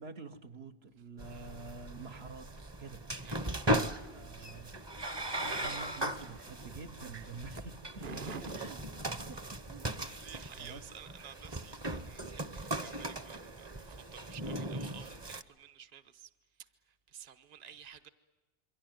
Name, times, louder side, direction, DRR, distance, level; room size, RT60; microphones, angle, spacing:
voice 1, 0.0-2.5 2.8-3.0 4.1-4.8 5.4-7.8 8.6-8.8 9.2-9.4 9.7-9.8 10.6-10.8, right 4 dB, 75° right, 1.5 m, -47 dB
sound 1, 1.2-15.4, right 1 dB, 25° right, 0.9 m, -38 dB
voice 2, 3.2-3.5 8.0-8.7 10.2-18.1, right 5 dB, 40° right, 1.1 m, -50 dB
27.5 x 23.5 x 9.2 m
omnidirectional pair, 1.1 m